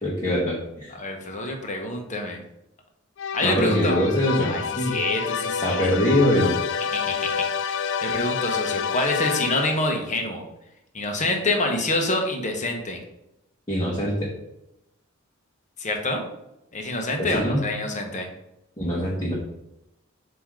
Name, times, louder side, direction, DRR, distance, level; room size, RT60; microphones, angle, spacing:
voice 1, 0.0-0.9 3.4-4.9 5.6-6.5 13.7-14.3 17.2-17.6 18.8-19.3, equal, 20° left, -6 dB, 1.4 m, -23 dB
voice 2, 0.9-2.4 3.3-4.1 4.5-5.9 6.9-10.4 10.9-13.0 15.8-16.2 16.7-18.3, left 2 dB, 40° left, 2 dB, 1.2 m, -27 dB
sound 1, 3.2-10.0, left 6 dB, 65° left, 0.4 m, -28 dB
7.6 x 3.0 x 4.8 m, 0.86 s
head